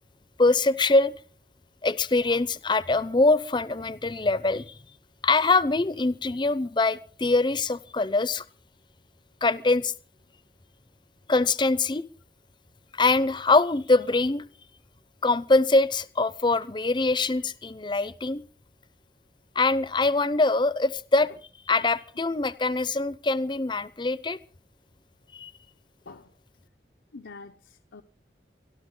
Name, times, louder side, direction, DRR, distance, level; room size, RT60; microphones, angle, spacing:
voice 1, 0.4-1.1 1.8-4.7 5.2-8.4 9.4-9.9 11.3-12.1 12.9-14.4 15.2-18.4 19.5-21.3 21.7-24.4 25.3-25.5, left 3 dB, 25° left, 0.6 m, -23 dB
voice 2, 27.1-28.0, left 3 dB, 90° left, 0.9 m, -45 dB
24.0 x 13.0 x 3.9 m
head